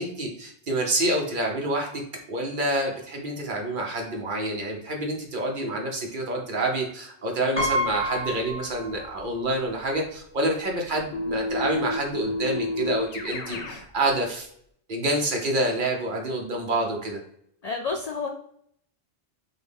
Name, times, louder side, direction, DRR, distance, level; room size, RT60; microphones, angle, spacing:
voice 1, 0.0-1.9 2.3-14.5 14.9-17.2, right 1 dB, 50° right, 0 dB, 1.0 m, -27 dB
Piano, 7.6-9.4 9.7-9.8 11.0-11.1 11.3-11.6, equal, 15° right, 0.9 m, -29 dB
Keyboard (musical), 11.1-13.9, left 2 dB, 90° left, 0.9 m, -30 dB
voice 2, 17.6-18.3, left 4 dB, 60° left, 3 dB, 0.4 m, -29 dB
6.0 x 2.2 x 3.5 m, 0.68 s
omnidirectional pair, 1.1 m